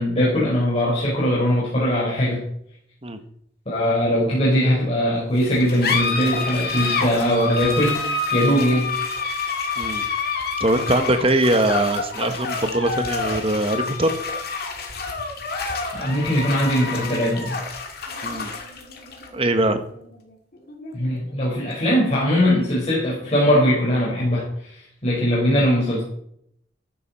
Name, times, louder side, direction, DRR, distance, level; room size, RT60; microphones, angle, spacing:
voice 1, 0.0-2.4 3.6-8.0 8.3-8.9 15.9-17.6 20.9-26.0, equal, 35° left, -6 dB, 5.0 m, -20 dB
sound 1, 5.4-22.4, left 4 dB, 55° left, 2.3 m, -28 dB
voice 2, 10.6-14.1 18.2-18.5 19.3-19.8, right 1 dB, 30° right, 8 dB, 1.2 m, -21 dB
14.0 x 10.5 x 4.3 m, 0.70 s
head